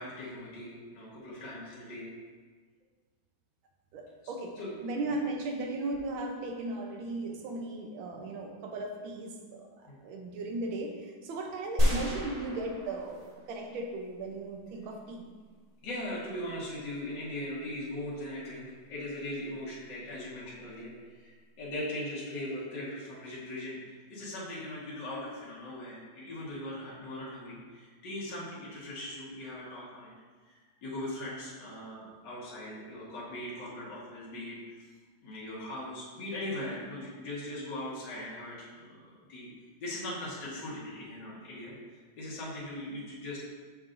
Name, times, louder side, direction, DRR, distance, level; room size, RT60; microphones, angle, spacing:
voice 1, 0.0-2.1 4.6-4.7 9.9-10.0 15.8-30.1 30.4-34.6 35.2-39.5 39.8-41.7 42.2-43.4, left 1 dB, 60° left, -7 dB, 2.0 m, -40 dB
voice 2, 3.9-4.6 4.8-9.7 10.0-15.3, right 2 dB, 80° right, 2 dB, 1.6 m, -36 dB
sound 1, 11.8-13.5 14.0-14.1, equal, 25° right, 1.2 m, -30 dB
6.6 x 5.7 x 2.5 m, 1.5 s
omnidirectional pair, 2.2 m